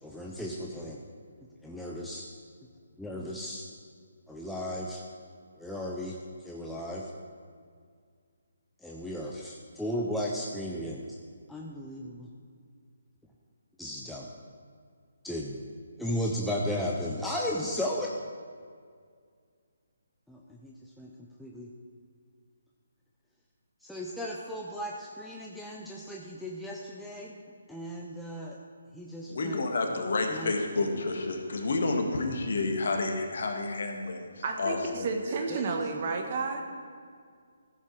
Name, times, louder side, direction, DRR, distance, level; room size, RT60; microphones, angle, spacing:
voice 1, 0.0-1.0 1.6-2.3 3.0-3.7 4.3-5.0 5.6-6.2 6.4-7.1 8.8-11.0 11.5-12.3 13.8-14.3 15.2-15.6 16.0-18.1 20.3-21.1 21.4-21.7 23.8-27.3 27.7-28.6 28.9-29.6 30.3-30.5 35.5-35.7, equal, ahead, -3 dB, 0.7 m, -35 dB
voice 2, 29.3-35.3, left 3 dB, 65° left, 3 dB, 1.6 m, -30 dB
voice 3, 34.4-36.6, right 4 dB, 40° right, 4 dB, 1.3 m, -31 dB
14.0 x 7.3 x 4.7 m, 2.1 s
hypercardioid pair, 150°, 0 cm